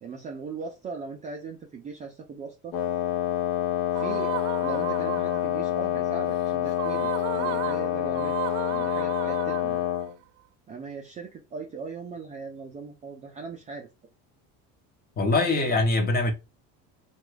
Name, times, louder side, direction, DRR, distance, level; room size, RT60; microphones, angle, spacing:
voice 1, 0.0-2.7 3.9-8.4 8.7-9.8 10.7-13.9, right 4 dB, 20° right, 0.3 m, -39 dB
Wind instrument woodwind instrument, 2.7-10.1, left 11 dB, 70° left, 0.7 m, -27 dB
sound 1, 4.0-5.6 6.7-10.1, right 15 dB, 90° right, 0.5 m, -35 dB
voice 2, 15.2-16.3, left 2 dB, 25° left, 0.7 m, -23 dB
3.0 x 2.3 x 3.1 m
cardioid pair, 135°, 37 cm